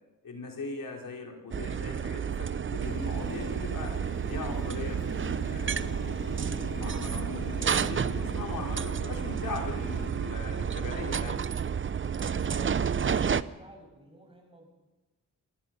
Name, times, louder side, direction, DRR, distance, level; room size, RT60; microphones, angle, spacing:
voice 1, 0.2-3.9 4.2-7.2 7.8-11.4, left 3 dB, 85° left, 2 dB, 3.8 m, -40 dB
sound 1, 1.5-13.4, right 7 dB, 40° right, 0.6 m, -31 dB
sound 2, 2.8-10.1, left 5 dB, 60° left, 1.7 m, -43 dB
voice 2, 12.3-14.7, right 1 dB, 15° right, 1 dB, 6.4 m, -52 dB
26.0 x 19.0 x 5.8 m, 1.1 s
wide cardioid pair, 110°, 33 cm